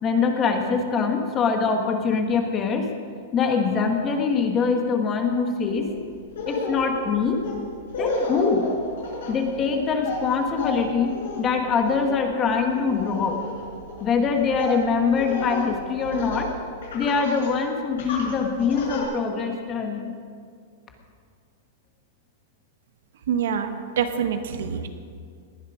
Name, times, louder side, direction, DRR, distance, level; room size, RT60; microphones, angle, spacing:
voice 1, 0.0-2.9 3.3-5.9 6.5-7.4 8.0-8.7 9.3-13.4 14.0-16.5 16.9-20.1, left 5 dB, 20° left, 4 dB, 1.6 m, -23 dB
Laughter, 5.7-5.9 6.3-16.5 16.8-17.5 18.0-19.0, left 2 dB, 75° left, 5.0 m, -32 dB
voice 2, 23.3-24.9, right 7 dB, 75° right, 7 dB, 1.4 m, -26 dB
19.0 x 11.0 x 5.1 m, 2.1 s
supercardioid pair, 155°, 0 cm